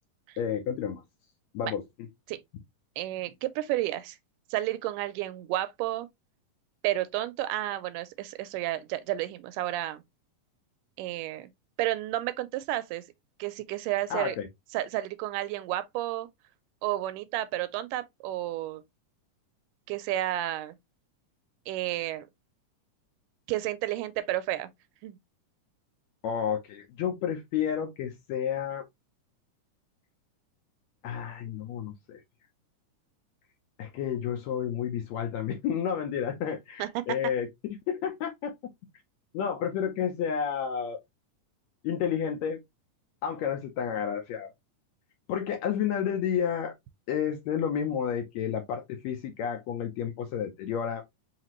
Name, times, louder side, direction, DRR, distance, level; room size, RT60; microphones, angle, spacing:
voice 1, 0.4-1.0 1.5-1.8 14.1-14.5 26.2-28.9 31.0-32.2 33.8-37.5 37.9-38.5 39.3-41.0 41.8-42.6 43.2-44.5 45.3-46.7 47.1-51.0, left 8 dB, 75° left, 1.7 m, -31 dB
voice 2, 3.0-4.2 4.5-6.1 6.8-10.0 11.0-11.5 11.8-13.0 13.4-14.4 14.7-16.3 16.8-18.8 19.9-20.8 21.7-22.3 23.5-24.7 25.0-25.2 36.8-36.9, right 14 dB, 80° right, 2.0 m, -31 dB
5.8 x 2.8 x 2.9 m
omnidirectional pair, 3.8 m